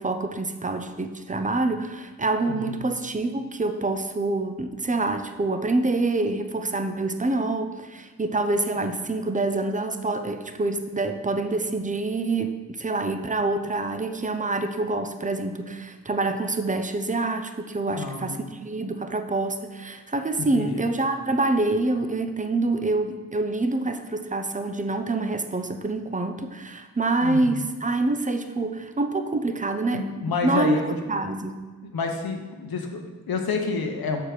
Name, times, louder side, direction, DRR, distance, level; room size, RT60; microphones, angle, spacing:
voice 1, 0.0-30.1 30.4-30.8 31.1-31.6, right 2 dB, 20° right, 7 dB, 0.8 m, -26 dB
voice 2, 2.5-2.8 17.8-18.5 20.4-20.8 27.2-27.6 29.9-30.9 31.9-34.2, left 4 dB, 75° left, 4 dB, 1.1 m, -29 dB
6.5 x 4.6 x 5.0 m, 1.3 s
supercardioid pair, 40°, 37 cm